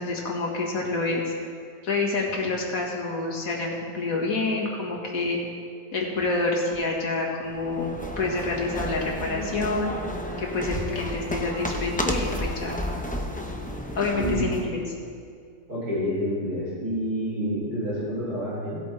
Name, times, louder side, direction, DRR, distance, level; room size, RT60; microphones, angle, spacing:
voice 1, 0.0-1.3 1.8-5.4 5.9-9.9 10.4-12.7 14.0-14.9, left 3 dB, 70° left, -1 dB, 2.1 m, -27 dB
sound 1, 7.5-14.7, equal, 10° left, 0.5 m, -32 dB
voice 2, 14.2-14.5 15.7-18.8, equal, 85° right, -8 dB, 4.1 m, -28 dB
17.5 x 8.3 x 3.4 m, 2.2 s
omnidirectional pair, 1.6 m